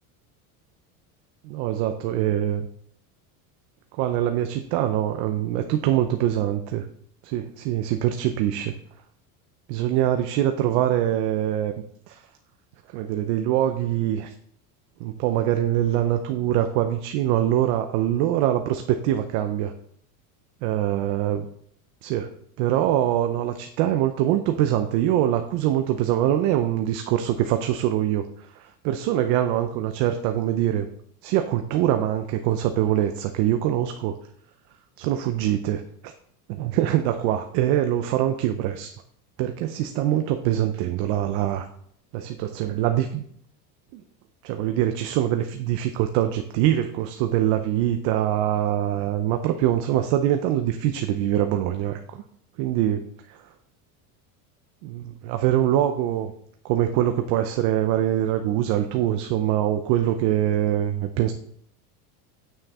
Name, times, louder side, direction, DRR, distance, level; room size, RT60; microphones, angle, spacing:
voice 1, 1.5-2.7 4.0-6.8 7.2-8.7 9.7-11.7 12.1-12.2 12.9-14.3 15.0-19.7 20.6-21.5 22.0-22.3 22.6-28.2 28.5-30.9 31.2-34.1 35.0-36.1 36.5-38.9 39.4-41.7 42.1-43.2 43.9-44.0 44.4-52.2 52.6-53.4 54.8-56.3 56.6-61.3, right 11 dB, 50° right, 7 dB, 0.7 m, -24 dB
9.2 x 6.4 x 4.2 m, 0.66 s
cardioid pair, 165°, 45 cm